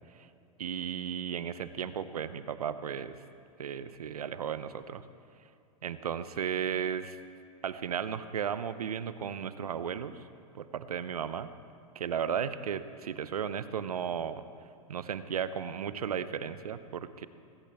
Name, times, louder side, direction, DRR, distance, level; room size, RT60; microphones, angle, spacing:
voice 1, 0.6-3.2 3.6-5.0 5.8-7.2 7.6-10.2 10.5-11.5 11.9-14.4 14.9-17.3, right 8 dB, 90° right, 13 dB, 0.7 m, -35 dB
19.5 x 15.5 x 3.5 m, 2.4 s
hypercardioid pair, 105°, 19 cm